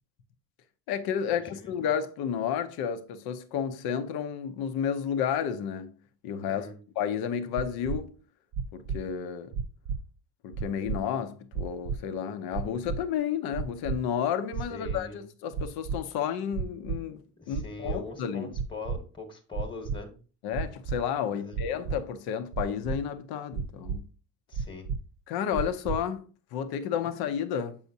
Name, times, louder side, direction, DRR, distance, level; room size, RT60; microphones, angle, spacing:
voice 1, 0.9-5.9 6.2-6.7 7.0-8.1 8.7-9.5 10.4-17.2 17.5-18.5 20.4-24.0 25.3-27.8, left 8 dB, 85° left, 0.7 m, -31 dB
voice 2, 1.4-1.8 6.5-6.7 14.7-15.2 17.4-20.1 21.3-21.6 24.5-24.9, left 4 dB, 15° left, 1.1 m, -42 dB
sound 1, 7.6-8.0 8.5-9.0 9.5-10.0 10.5-11.0 11.5-12.0 12.5-13.0 13.5-14.0 14.5-15.0 15.5-16.0 16.5-17.0 17.5-18.0 18.5-19.0 19.5-20.0 20.5-21.0 21.5-22.0 22.5-23.0 23.5-24.0 24.5-25.0 25.5-26.0, right 6 dB, 55° right, 0.5 m, -31 dB
7.0 x 5.6 x 2.7 m
cardioid pair, 100°, 37 cm